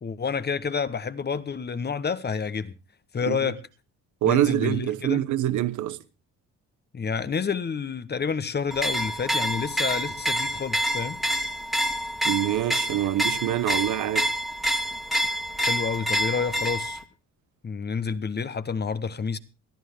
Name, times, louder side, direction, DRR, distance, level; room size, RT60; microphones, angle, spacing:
voice 1, 0.0-2.8 3.1-3.6 4.2-5.2 6.9-11.2 15.5-17.0 17.6-19.4, left 5 dB, 35° left, 1.1 m, -29 dB
voice 2, 4.2-6.0 12.2-14.3, right 13 dB, 75° right, 1.0 m, -25 dB
sound 1, 8.7-17.0, right 1 dB, ahead, 1.8 m, -27 dB
21.0 x 13.0 x 3.5 m
cardioid pair, 90°, 30 cm